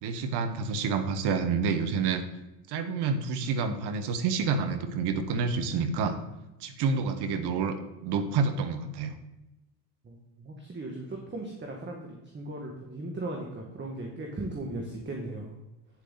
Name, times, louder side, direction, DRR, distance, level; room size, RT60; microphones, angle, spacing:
voice 1, 0.0-2.2 2.7-6.2 6.6-7.7 8.0-9.1, right 5 dB, 60° right, 9 dB, 1.4 m, -28 dB
voice 2, 10.0-15.6, right 2 dB, 25° right, 1 dB, 1.7 m, -37 dB
9.2 x 7.4 x 4.0 m, 0.95 s
supercardioid pair, 90°, 45 cm